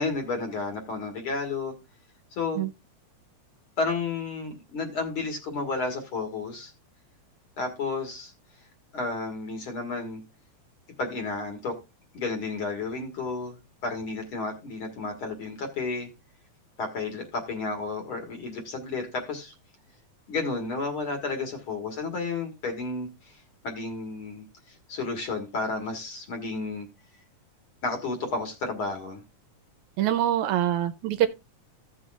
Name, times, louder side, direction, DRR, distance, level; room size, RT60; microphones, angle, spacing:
voice 1, 0.0-1.7 2.3-2.6 3.8-6.7 7.6-8.3 8.9-10.2 11.0-11.7 12.1-13.6 13.8-16.1 16.8-19.5 20.3-26.9 27.8-29.2, left 3 dB, 50° left, 2.1 m, -32 dB
voice 2, 30.0-31.3, right 12 dB, 75° right, 2.0 m, -24 dB
15.5 x 6.2 x 2.4 m
omnidirectional pair, 3.6 m